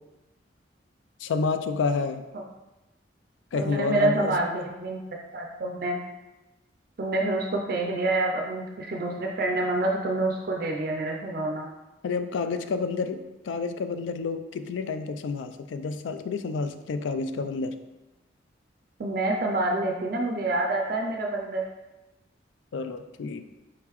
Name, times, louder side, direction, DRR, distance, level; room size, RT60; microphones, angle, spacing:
voice 1, 1.2-2.2 3.5-4.3 12.0-17.7 22.7-23.4, left 4 dB, 85° left, 9 dB, 0.3 m, -29 dB
voice 2, 3.5-5.0 5.3-6.0 7.0-11.7 19.0-21.6, right 2 dB, 50° right, 0 dB, 0.4 m, -27 dB
4.7 x 3.7 x 3.0 m, 1.0 s
head